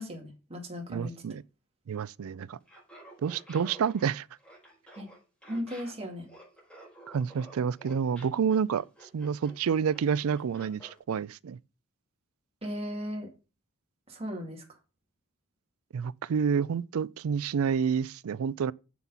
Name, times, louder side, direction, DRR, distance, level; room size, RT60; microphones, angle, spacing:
voice 1, 0.0-1.1 5.0-5.1 5.5-6.3 12.6-13.3 14.1-14.6, equal, 25° right, 2.2 m, -36 dB
voice 2, 0.9-1.4 1.9-2.6 3.2-4.3 7.1-8.8 9.1-11.6 15.9-18.7, right 7 dB, 65° right, 0.4 m, -29 dB
Laughter, 2.6-11.0, right 1 dB, 5° left, 5.0 m, -51 dB
7.2 x 6.0 x 5.6 m
head